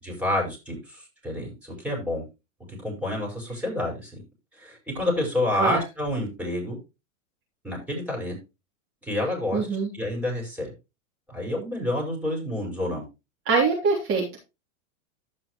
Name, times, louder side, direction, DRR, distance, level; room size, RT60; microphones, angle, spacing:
voice 1, 0.0-2.2 2.8-4.2 4.6-6.8 7.6-8.4 9.0-9.7 9.9-10.7 11.3-13.0, left 1 dB, 5° right, -1 dB, 5.4 m, -29 dB
voice 2, 9.5-9.9 13.4-14.4, right 4 dB, 35° right, -4 dB, 3.4 m, -23 dB
15.5 x 5.6 x 3.1 m, 0.26 s
hypercardioid pair, 130°, 39 cm